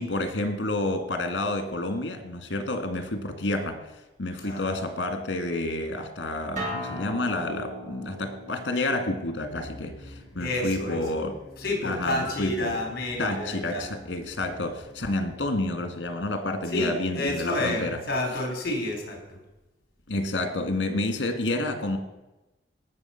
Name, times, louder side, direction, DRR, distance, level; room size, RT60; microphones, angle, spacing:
voice 1, 0.0-3.8 4.2-11.4 11.8-12.8 13.2-18.0 20.1-22.0, left 2 dB, 70° left, 7 dB, 1.8 m, -29 dB
voice 2, 4.4-4.8 10.4-11.0 11.6-13.9 16.7-19.2, left 1 dB, 55° left, 2 dB, 3.7 m, -29 dB
Acoustic guitar, 6.6-11.7, equal, 45° right, 5.0 m, -39 dB
sound 1, 9.4-16.2, equal, 30° left, 4.7 m, -48 dB
18.5 x 6.3 x 5.7 m, 1.0 s
head